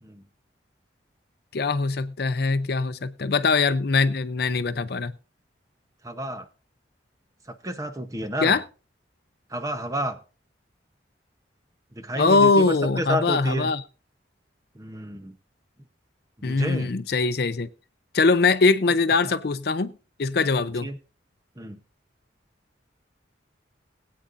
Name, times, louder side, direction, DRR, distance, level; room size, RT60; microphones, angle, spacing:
voice 1, 1.5-5.1 8.4-8.6 12.1-13.8 16.4-17.7 18.1-19.9 20.2-20.9, left 4 dB, 55° left, 0.5 m, -22 dB
voice 2, 6.0-6.5 7.6-8.6 9.5-10.2 12.0-13.7 14.7-15.4 16.4-16.9 20.8-21.0 21.6-21.8, equal, 15° right, 0.8 m, -30 dB
21.5 x 8.5 x 2.5 m
head